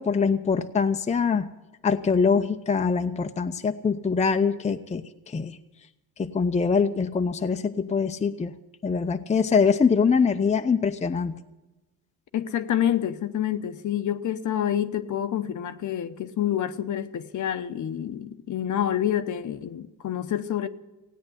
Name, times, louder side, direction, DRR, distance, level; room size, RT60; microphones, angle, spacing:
voice 1, 0.0-1.5 1.8-5.6 6.2-8.5 8.8-11.4, left 5 dB, 20° left, 0.7 m, -23 dB
voice 2, 12.3-20.7, left 10 dB, 55° left, 0.9 m, -28 dB
16.5 x 9.4 x 7.9 m
cardioid pair, 115°, 36 cm